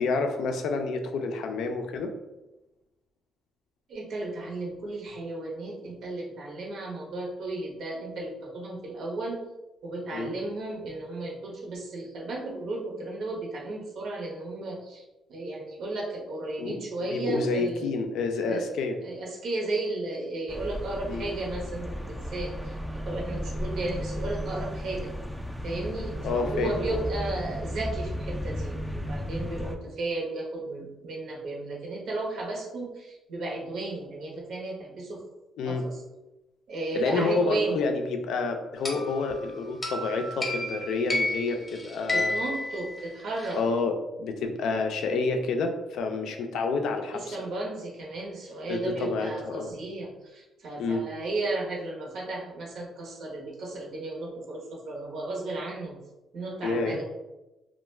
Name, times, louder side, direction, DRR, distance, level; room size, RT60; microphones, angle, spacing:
voice 1, 0.0-2.1 10.1-10.3 16.6-16.8 17.1-19.0 21.1-21.3 26.2-27.1 35.6-35.9 36.9-42.3 43.6-47.4 48.7-49.7 50.8-51.0 56.6-57.0, left 4 dB, 80° left, 5 dB, 0.3 m, -29 dB
voice 2, 3.9-9.4 9.8-15.0 15.3-18.0 18.5-18.7 19.0-22.7 23.0-25.1 25.6-35.2 35.6-36.0 36.7-37.9 42.1-43.6 47.1-56.0 56.3-57.0, right 2 dB, 70° right, -1 dB, 0.7 m, -34 dB
sound 1, 20.5-29.8, equal, 5° right, 0.3 m, -34 dB
sound 2, 38.8-43.6, left 2 dB, 20° left, 0.7 m, -32 dB
2.3 x 2.1 x 3.1 m, 1.0 s
cardioid pair, 90°, 0 cm